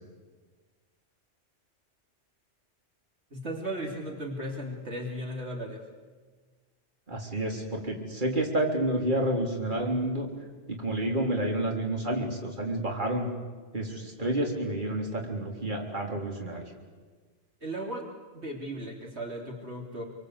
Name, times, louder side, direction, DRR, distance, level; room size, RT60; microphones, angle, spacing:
voice 1, 3.3-5.8 9.4-9.5 17.6-18.1 18.3-20.0, right 1 dB, 60° right, 0 dB, 3.6 m, -36 dB
voice 2, 7.1-10.3 10.7-13.3 13.7-16.7, right 1 dB, 40° right, 0 dB, 3.8 m, -29 dB
28.5 x 24.5 x 8.2 m, 1.4 s
omnidirectional pair, 1.2 m